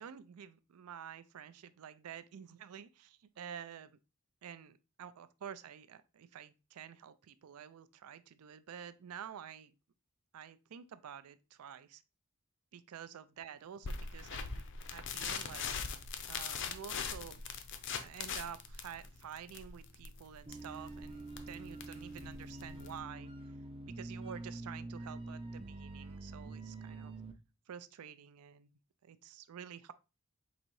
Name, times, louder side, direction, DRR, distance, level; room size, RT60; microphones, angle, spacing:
voice 1, 0.0-4.0 4.4-9.7 10.3-12.0 12.7-14.6 14.9-15.7 16.3-17.4 18.0-23.3 23.9-27.1 27.7-28.7 29.0-29.9, right 8 dB, 85° right, 0.4 m, -49 dB
sound 1, 13.8-23.0, left 6 dB, 55° left, 0.5 m, -41 dB
sound 2, 20.5-27.3, right 2 dB, 25° right, 0.5 m, -46 dB
3.9 x 2.6 x 4.6 m
head